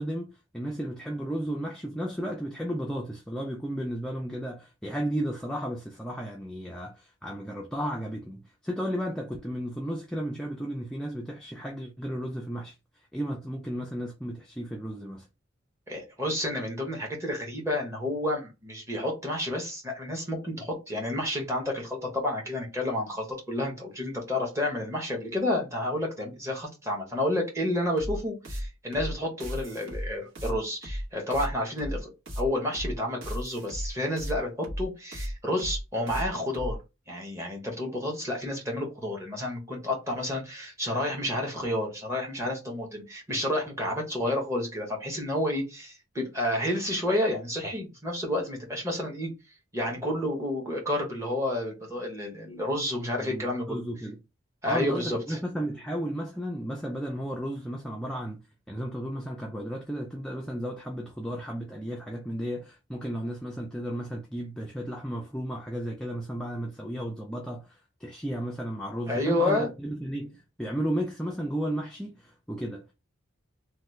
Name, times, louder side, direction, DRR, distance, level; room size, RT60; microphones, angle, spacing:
voice 1, 0.0-15.3 53.2-54.2 54.7-58.4 58.7-72.9, equal, 5° left, 0.3 m, -34 dB
voice 2, 15.9-32.1 32.4-36.8 37.1-49.3 49.7-53.8 54.6-55.4 69.1-69.7, left 1 dB, 15° right, 0.8 m, -30 dB
sound 1, 28.0-36.8, equal, 65° right, 1.0 m, -34 dB
2.9 x 2.2 x 3.0 m
head